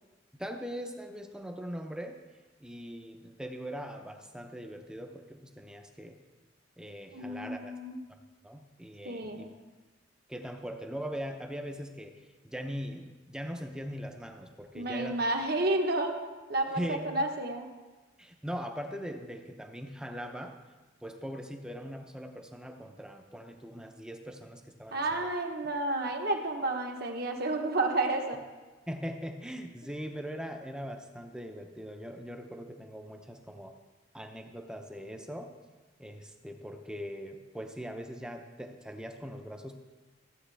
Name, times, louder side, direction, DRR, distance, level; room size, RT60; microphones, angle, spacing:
voice 1, 0.3-2.2 2.6-6.2 6.8-7.8 8.1-8.2 8.4-9.5 10.3-12.1 12.4-15.2 16.7-17.2 18.2-20.5 21.0-25.3 28.9-33.7 34.1-35.5 36.0-39.7, equal, 5° right, 4 dB, 0.7 m, -41 dB
voice 2, 7.1-8.0 9.0-9.5 14.7-16.1 16.5-17.7 24.9-28.4, right 2 dB, 55° right, 2 dB, 1.2 m, -31 dB
15.0 x 7.9 x 3.4 m, 1.3 s
head